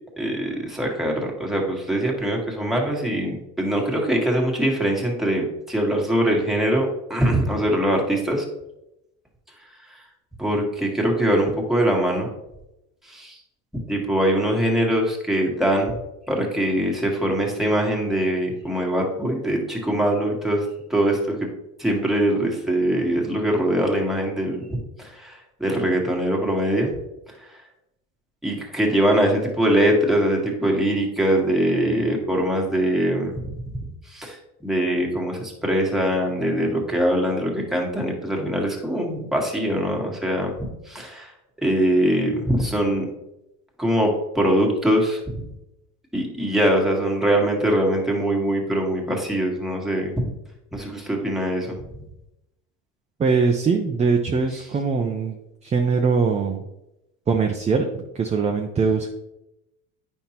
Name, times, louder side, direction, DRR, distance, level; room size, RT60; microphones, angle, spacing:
voice 1, 0.2-8.4 10.4-12.3 13.1-13.4 13.9-15.9 16.3-20.6 20.9-21.5 21.8-27.0 28.4-33.3 34.1-41.3 41.6-43.0 43.8-45.4 46.1-50.3 50.7-51.8, right 1 dB, ahead, -1 dB, 1.5 m, -22 dB
voice 2, 53.2-56.6 57.3-59.1, right 5 dB, 20° right, 3 dB, 0.5 m, -22 dB
9.1 x 5.4 x 2.9 m, 0.91 s
supercardioid pair, 115°, 35 cm